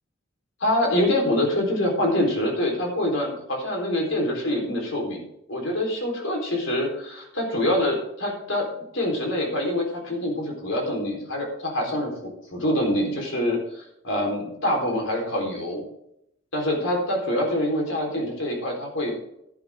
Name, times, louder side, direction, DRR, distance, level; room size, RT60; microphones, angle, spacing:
voice 1, 0.6-5.2 5.5-8.7 8.9-15.8 16.5-19.2, left 1 dB, 65° left, 1 dB, 4.1 m, -25 dB
11.5 x 11.0 x 3.7 m, 0.77 s
head